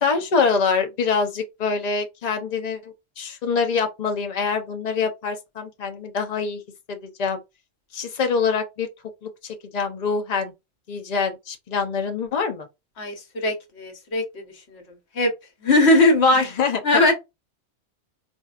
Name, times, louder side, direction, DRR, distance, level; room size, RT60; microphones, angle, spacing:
voice 1, 0.0-6.6 6.9-7.4 7.9-8.9 9.2-10.5 10.9-12.7 16.4-16.8, left 5 dB, 40° left, 0.7 m, -25 dB
voice 2, 13.0-14.4 14.7-14.8 15.1-15.3 15.6-16.5 16.8-17.1, left 2 dB, 70° left, 1.3 m, -19 dB
4.4 x 2.7 x 2.4 m
omnidirectional pair, 1.2 m